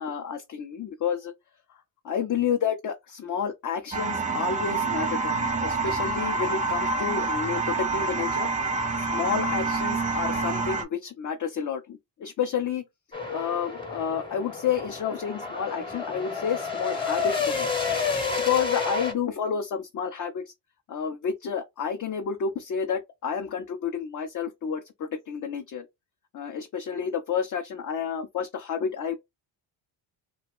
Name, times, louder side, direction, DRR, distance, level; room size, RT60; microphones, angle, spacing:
voice 1, 0.0-1.3 2.0-8.5 9.1-12.8 13.3-17.7 18.4-20.4 20.9-25.9 26.3-29.2, left 7 dB, 40° left, 0.5 m, -30 dB
sound 1, 3.9-10.8, right 3 dB, 15° right, 0.6 m, -27 dB
sound 2, 13.1-19.1, left 5 dB, 10° left, 0.9 m, -30 dB
2.4 x 2.2 x 3.5 m
cardioid pair, 80°, 49 cm